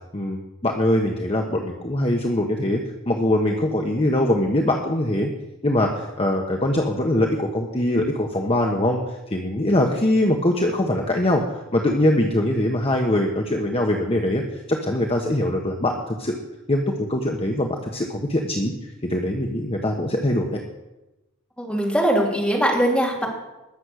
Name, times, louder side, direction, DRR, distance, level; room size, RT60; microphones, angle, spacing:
voice 1, 0.1-2.8 3.0-5.3 5.6-9.0 9.3-11.4 11.7-16.3 16.7-18.7 19.0-20.6, left 1 dB, 30° left, 1 dB, 1.2 m, -22 dB
voice 2, 21.6-23.3, equal, 5° left, -2 dB, 3.2 m, -21 dB
21.0 x 7.2 x 6.4 m, 0.99 s
head